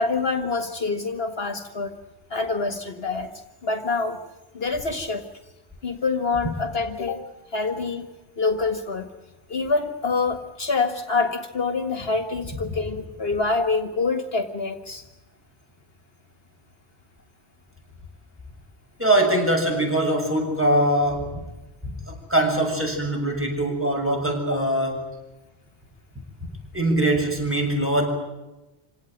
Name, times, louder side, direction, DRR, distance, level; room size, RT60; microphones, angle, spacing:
voice 1, 0.0-2.0 2.3-3.3 3.6-4.2 4.5-5.3 5.8-7.2 7.5-8.1 8.4-9.1 9.5-15.0, left 4 dB, 60° left, 7 dB, 2.0 m, -26 dB
voice 2, 19.0-21.3 21.8-21.9 22.3-25.1 26.7-28.1, right 1 dB, 10° right, 1 dB, 7.5 m, -22 dB
27.5 x 18.0 x 9.3 m, 1.0 s
omnidirectional pair, 1.1 m